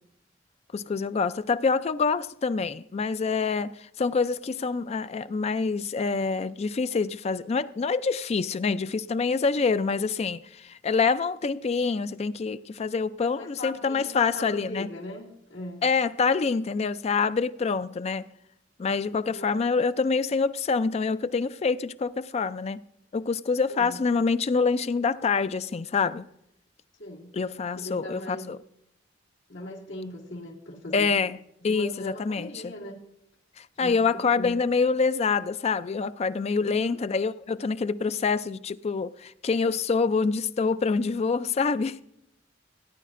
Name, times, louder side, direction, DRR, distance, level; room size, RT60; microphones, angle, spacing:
voice 1, 0.7-14.9 15.8-18.3 18.8-22.8 23.1-26.3 27.3-28.6 30.9-31.4 31.6-32.7 33.6-42.0, left 4 dB, 35° left, 0.4 m, -26 dB
voice 2, 13.4-15.8 19.1-19.5 23.7-24.0 27.0-27.3 27.8-28.5 29.5-31.1 31.7-33.0 33.8-34.6 36.6-37.0, left 1 dB, 85° left, 2.3 m, -39 dB
17.5 x 10.0 x 2.5 m
head